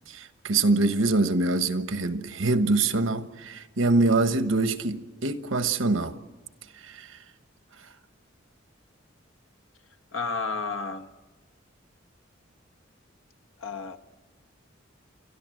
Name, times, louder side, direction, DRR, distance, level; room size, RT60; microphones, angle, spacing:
voice 1, 0.1-6.2 6.8-7.2, right 3 dB, 90° right, 1.2 m, -24 dB
voice 2, 10.1-11.1 13.6-14.0, left 4 dB, 90° left, 1.3 m, -31 dB
29.5 x 13.0 x 7.8 m
head